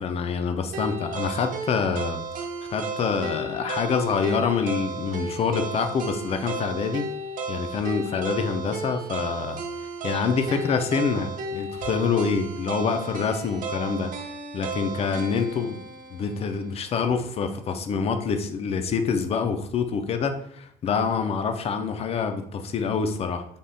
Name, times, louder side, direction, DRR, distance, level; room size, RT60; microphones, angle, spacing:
voice 1, 0.0-2.2 2.7-7.1 7.5-9.6 10.0-14.1 14.5-15.8 16.1-23.4, left 5 dB, 35° left, 8 dB, 0.4 m, -26 dB
sound 1, 0.7-16.8, right 3 dB, 55° right, 0.5 m, -34 dB
3.4 x 2.6 x 2.2 m, 0.66 s
cardioid pair, 110°, 17 cm